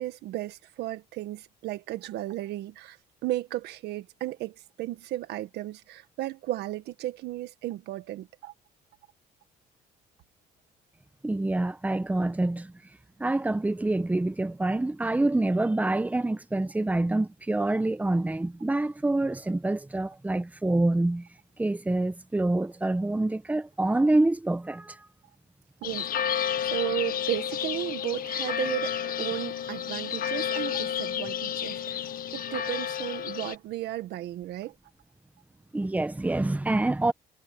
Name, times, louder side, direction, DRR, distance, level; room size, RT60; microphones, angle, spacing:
voice 1, 0.0-8.5 25.8-34.7, right 15 dB, 80° right, 1.7 m, -34 dB
voice 2, 11.2-12.7 13.2-21.3 21.6-25.0 35.7-37.1, right 2 dB, 10° right, 1.2 m, -26 dB
sound 1, 25.8-33.6, left 9 dB, 55° left, 1.5 m, -31 dB
cardioid pair, 110°, 17 cm